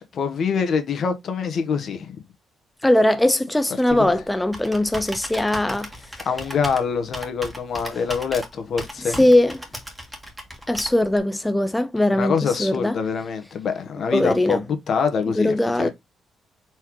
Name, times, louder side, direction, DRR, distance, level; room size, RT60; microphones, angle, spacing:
voice 1, 0.1-2.2 3.9-4.1 6.2-9.2 12.1-15.9, left 6 dB, 60° left, 1.1 m, -25 dB
voice 2, 2.8-6.3 9.0-9.6 10.7-13.0 14.1-14.6 15.4-15.9, left 1 dB, 10° left, 0.4 m, -20 dB
Computer keyboard, 3.9-11.2, equal, 10° right, 1.6 m, -37 dB
4.4 x 3.6 x 3.0 m
cardioid pair, 90°, 0 cm